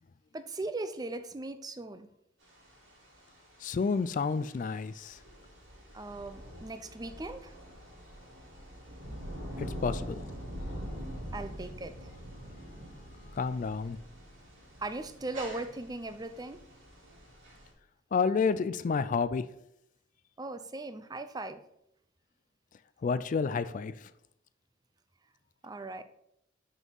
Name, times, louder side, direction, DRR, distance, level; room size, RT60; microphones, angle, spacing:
voice 1, 0.3-2.1 5.9-7.5 11.3-12.1 14.8-16.6 20.4-21.6 25.6-26.0, right 2 dB, 20° right, 0.5 m, -39 dB
sound 1, 2.4-17.7, equal, 85° right, 3.1 m, -44 dB
voice 2, 3.6-5.2 9.6-10.2 13.4-14.0 18.1-19.4 23.0-23.9, left 5 dB, 40° left, 0.3 m, -30 dB
6.1 x 5.4 x 5.5 m
head